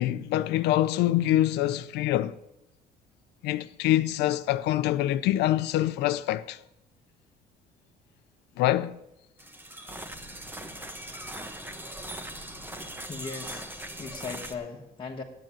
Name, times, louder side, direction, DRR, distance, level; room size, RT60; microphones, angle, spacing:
voice 1, 0.0-2.3 3.4-6.6 8.6-8.9, left 14 dB, 85° left, 0.6 m, -25 dB
sound 1, 9.4-14.5, right 1 dB, 10° right, 1.2 m, -40 dB
voice 2, 13.1-15.2, left 4 dB, 30° left, 1.4 m, -38 dB
9.2 x 8.8 x 8.9 m
cardioid pair, 110°, 17 cm